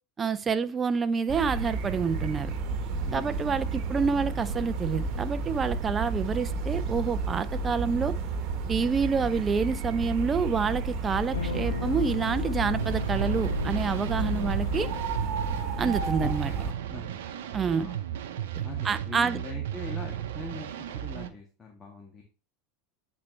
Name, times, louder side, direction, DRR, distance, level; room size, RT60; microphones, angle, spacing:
voice 1, 0.2-2.5 3.1-8.1 8.7-14.9 15.8-16.5 17.5-17.9 18.8-19.4, right 5 dB, 25° right, 0.5 m, -28 dB
sound 1, 1.3-16.7, right 4 dB, 50° right, 1.2 m, -32 dB
voice 2, 3.0-3.4 16.2-16.6 16.9-17.5 17.8-18.0 18.6-22.2, left 3 dB, 25° left, 1.6 m, -42 dB
sound 2, 11.3-15.3, left 6 dB, 90° left, 0.3 m, -35 dB
sound 3, 12.7-21.3, right 11 dB, 75° right, 0.7 m, -35 dB
8.5 x 4.3 x 3.2 m
hypercardioid pair, 90°, 0 cm